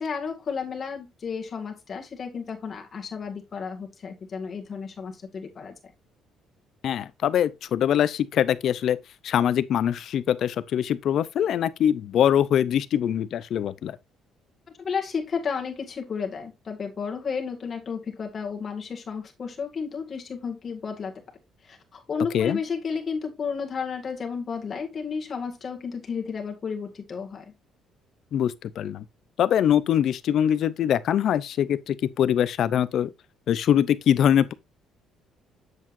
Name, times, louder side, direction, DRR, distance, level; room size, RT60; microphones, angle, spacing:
voice 1, 0.0-5.7 14.8-21.2 21.6-27.4, left 5 dB, 35° left, 2.0 m, -32 dB
voice 2, 6.8-9.0 9.2-14.0 22.3-22.6 28.3-29.0 29.4-33.1 33.5-34.5, left 10 dB, 60° left, 0.5 m, -23 dB
7.9 x 7.3 x 2.6 m
cardioid pair, 120°, 0 cm